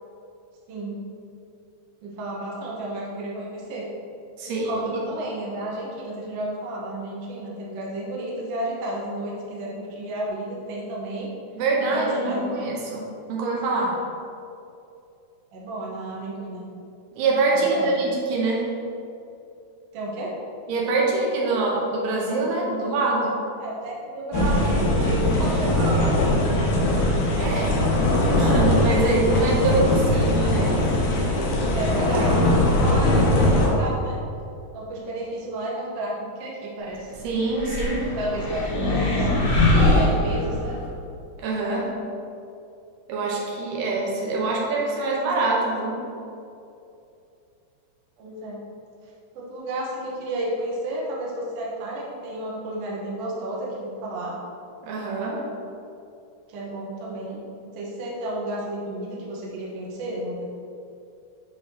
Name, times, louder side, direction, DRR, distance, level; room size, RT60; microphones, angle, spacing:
voice 1, 0.7-1.0 2.0-3.9 4.5-11.3 11.9-12.7 15.5-16.6 17.5-17.9 19.9-20.3 23.6-26.4 30.1-30.3 31.7-34.2 34.7-37.1 38.1-39.5 39.9-40.7 48.2-48.6 49.3-54.3 56.5-57.4 57.6-60.4, right 1 dB, 60° right, -5 dB, 1.7 m, -32 dB
voice 2, 4.4-4.8 11.5-14.0 17.2-18.7 20.7-23.4 27.3-27.8 28.3-30.9 37.2-38.2 41.4-41.9 43.1-46.1 54.8-55.4, right 3 dB, 85° right, -3 dB, 2.6 m, -24 dB
sound 1, 24.3-33.7, left 1 dB, 80° left, 2.7 m, -20 dB
sound 2, 37.5-40.9, left 1 dB, 60° left, 2.0 m, -22 dB
9.8 x 4.0 x 2.8 m, 2.6 s
omnidirectional pair, 3.8 m